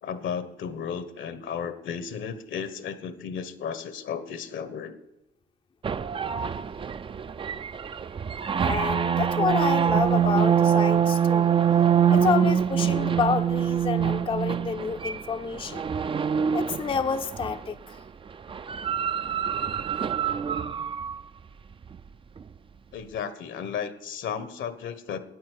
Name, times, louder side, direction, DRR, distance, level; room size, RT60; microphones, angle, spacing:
voice 1, 0.0-5.0 22.9-25.3, left 7 dB, 75° left, 12 dB, 1.2 m, -34 dB
sound 1, 5.8-17.6 18.5-21.1, right 8 dB, 25° right, 0.4 m, -25 dB
voice 2, 8.6-11.5 12.1-15.9 16.5-18.0, left 5 dB, 25° left, 8 dB, 0.5 m, -29 dB
9.6 x 9.0 x 8.3 m, 0.93 s
cardioid pair, 90°, 20 cm